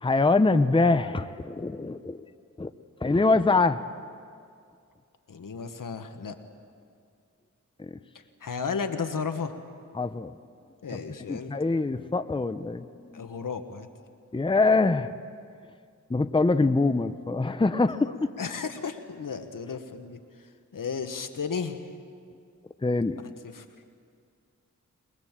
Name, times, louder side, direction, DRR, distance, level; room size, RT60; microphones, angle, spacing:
voice 1, 0.0-2.2 2.6-2.7 3.0-3.8 7.8-8.0 9.9-10.3 11.3-13.1 14.3-15.1 16.1-18.1 22.8-23.2, left 3 dB, 15° left, 11 dB, 0.7 m, -24 dB
voice 2, 5.3-6.4 8.4-9.5 10.8-11.5 13.1-13.9 18.0-18.1 18.4-21.9 23.2-23.6, left 5 dB, 80° left, 7 dB, 1.5 m, -34 dB
22.5 x 21.5 x 7.5 m, 2.3 s
wide cardioid pair, 65°, 32 cm